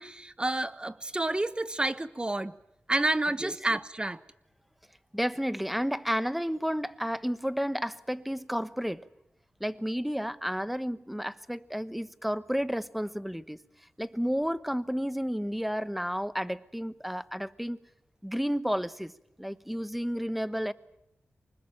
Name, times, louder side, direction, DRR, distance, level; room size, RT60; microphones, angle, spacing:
voice 1, 0.0-2.5 2.9-4.2, right 2 dB, 20° right, 1.2 m, -29 dB
voice 2, 5.1-9.1 9.6-13.6 14.0-17.8 18.2-19.1 19.4-20.7, equal, ahead, 1.1 m, -31 dB
25.0 x 20.5 x 8.9 m
cardioid pair, 60°, 4 cm